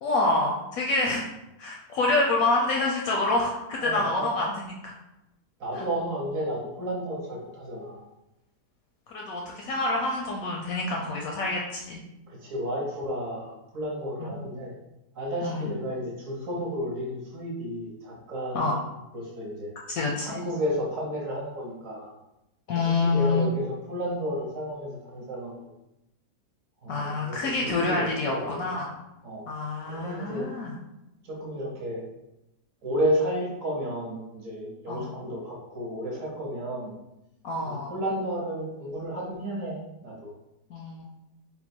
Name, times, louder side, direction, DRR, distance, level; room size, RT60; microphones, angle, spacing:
voice 1, 0.0-1.3 1.6-4.5 4.8-4.9 5.7-5.8 9.1-12.0 14.2-14.4 15.4-15.7 18.5-18.7 19.9-20.4 22.7-23.5 26.9-28.9 29.5-30.7 34.9-35.1 37.4-37.9 40.7-41.0, left 2 dB, 70° left, -1 dB, 0.8 m, -27 dB
voice 2, 3.8-4.3 5.6-8.0 12.3-14.7 15.1-18.9 19.1-19.7 20.2-22.1 22.8-25.7 26.8-28.7 29.2-29.4 29.9-30.5 31.2-32.0 32.8-36.9 37.6-40.3, equal, 55° right, -3 dB, 1.1 m, -32 dB
3.7 x 2.2 x 4.2 m, 0.92 s
omnidirectional pair, 1.8 m